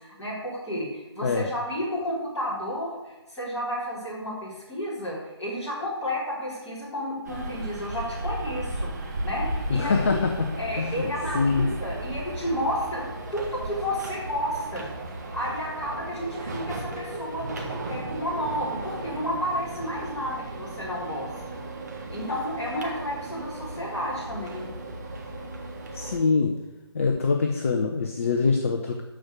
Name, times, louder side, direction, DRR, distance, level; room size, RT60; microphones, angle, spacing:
voice 1, 0.0-10.2 10.6-13.0 13.3-14.9 15.3-21.6 22.1-24.7, equal, 10° left, -9 dB, 4.1 m, -31 dB
sound 1, 7.2-26.2, right 2 dB, 40° right, 1.8 m, -35 dB
voice 2, 9.7-10.5 10.8-11.1 11.3-11.7 25.9-26.5 26.9-29.0, left 4 dB, 30° left, 4 dB, 0.8 m, -24 dB
12.5 x 4.8 x 7.9 m, 1.1 s
figure-of-eight pair, 150°, 14 cm